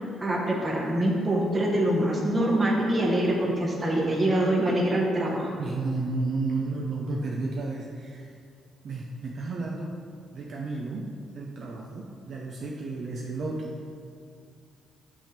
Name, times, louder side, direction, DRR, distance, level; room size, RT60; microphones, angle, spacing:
voice 1, 0.2-5.5, right 1 dB, 30° right, -1 dB, 1.2 m, -24 dB
voice 2, 5.6-8.3 8.8-9.9 10.3-11.1 11.3-13.7, right 3 dB, 60° right, -2 dB, 0.6 m, -32 dB
6.1 x 3.4 x 5.9 m, 2.2 s
cardioid pair, 90°, 0 cm